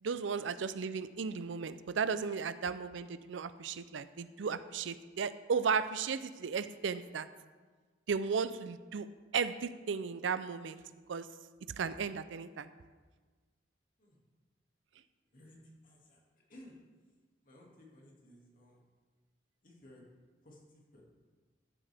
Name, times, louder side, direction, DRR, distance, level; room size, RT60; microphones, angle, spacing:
voice 1, 0.0-7.3 8.1-9.1 9.3-10.8 11.1-11.3 11.8-12.7, right 5 dB, 85° right, 14 dB, 0.5 m, -35 dB
voice 2, 15.3-16.2 16.5-16.7 17.4-18.8 19.6-20.0 20.4-21.0, left 1 dB, 50° left, -2 dB, 2.2 m, -57 dB
14.0 x 7.5 x 3.5 m, 1.4 s
head